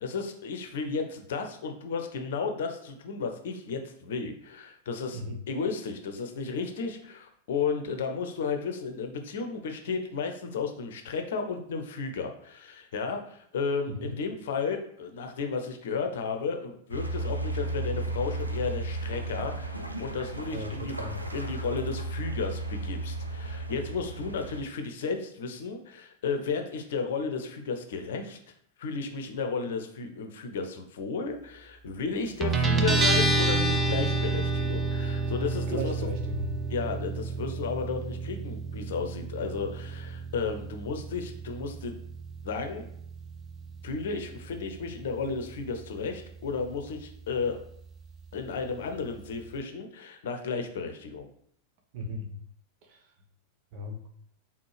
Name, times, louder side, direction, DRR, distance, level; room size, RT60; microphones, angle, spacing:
voice 1, 0.0-5.2 5.5-21.1 21.3-28.4 28.8-36.0 36.7-41.9 42.4-42.8 43.8-47.6 48.3-51.3, left 5 dB, 60° left, 5 dB, 0.7 m, -33 dB
sound 1, 16.9-24.6, right 2 dB, 85° right, 0.5 m, -34 dB
voice 2, 20.5-21.2 35.7-36.4 51.9-52.3 52.9-53.0 53.7-54.0, equal, 45° right, 2 dB, 0.9 m, -36 dB
Guitar, 32.4-49.6, right 3 dB, 20° right, 0.6 m, -31 dB
4.2 x 3.6 x 3.3 m, 0.68 s
figure-of-eight pair, 90°, 0 cm